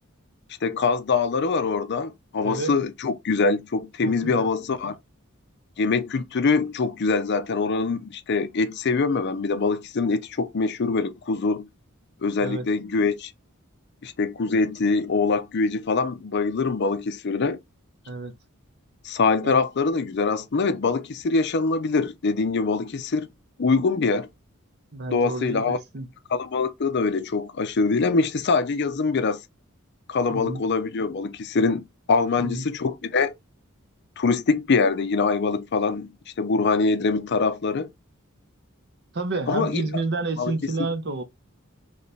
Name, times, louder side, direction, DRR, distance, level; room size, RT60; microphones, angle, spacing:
voice 1, 0.6-5.0 5.8-11.7 12.2-13.3 14.0-17.6 19.0-23.3 23.6-24.3 25.1-25.8 26.3-29.4 30.1-33.3 34.2-36.1 36.4-37.9 39.5-39.8 40.4-40.5 40.8-40.9, left 4 dB, 55° left, 0.5 m, -24 dB
voice 2, 2.4-2.8 4.0-4.5 12.4-12.6 18.1-18.3 19.4-19.5 24.9-26.1 30.3-30.6 32.4-32.7 39.1-41.2, right 3 dB, 55° right, 0.9 m, -30 dB
3.3 x 3.2 x 4.0 m
head